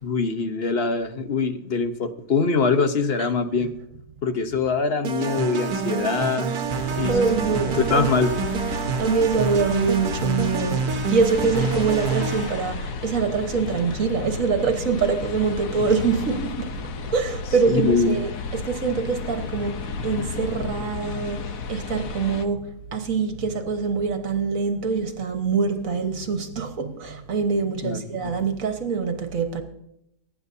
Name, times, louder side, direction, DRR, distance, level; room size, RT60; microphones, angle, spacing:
voice 1, 0.0-3.7 4.2-6.5 7.0-7.2 7.6-8.3 17.7-18.2 27.8-28.3, left 4 dB, 45° left, 1.0 m, -23 dB
sound 1, 5.0-12.7, right 6 dB, 80° right, 1.3 m, -27 dB
voice 2, 6.5-8.1 8.7-16.8 17.1-29.6, right 5 dB, 65° right, 1.7 m, -25 dB
sound 2, 6.7-22.5, left 4 dB, 70° left, 1.3 m, -32 dB
23.5 x 9.9 x 2.7 m
omnidirectional pair, 1.6 m